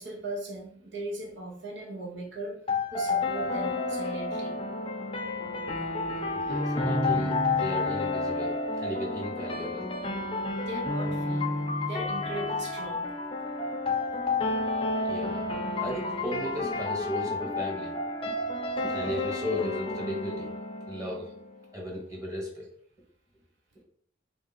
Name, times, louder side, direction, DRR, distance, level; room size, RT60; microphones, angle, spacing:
voice 1, 0.0-2.6 2.9-4.5 10.6-11.4 11.8-13.1 17.1-17.2 19.1-19.2 21.1-21.2, right 1 dB, 80° right, 1 dB, 0.8 m, -38 dB
sound 1, 2.7-21.6, left 2 dB, 30° left, 0.5 m, -30 dB
voice 2, 6.3-9.8 15.0-18.0 18.2-18.4 18.8-20.5 20.9-21.3 21.7-22.7, left 1 dB, 20° right, -2 dB, 1.0 m, -35 dB
3.2 x 2.7 x 3.9 m, 0.64 s
head